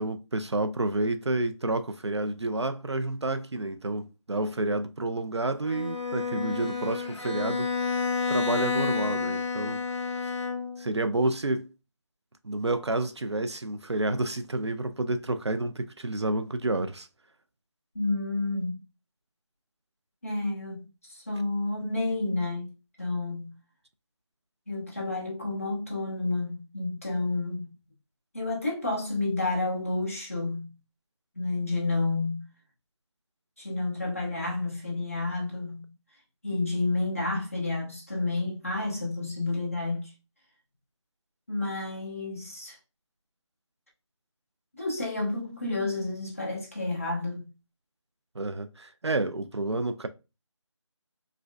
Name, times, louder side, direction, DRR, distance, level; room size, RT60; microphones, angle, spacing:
voice 1, 0.0-10.2 10.8-11.7 12.4-17.1 48.3-50.1, right 2 dB, 60° right, 0.4 m, -30 dB
Bowed string instrument, 5.6-10.9, left 5 dB, 65° left, 0.8 m, -30 dB
voice 2, 17.9-18.8 20.2-22.7 23.0-23.6 24.7-27.7 28.3-30.7 31.3-32.5 33.6-35.9 36.4-40.1 41.5-42.8 44.8-47.5, left 2 dB, 25° left, 0.9 m, -30 dB
4.8 x 2.1 x 2.3 m
figure-of-eight pair, 180°, 16 cm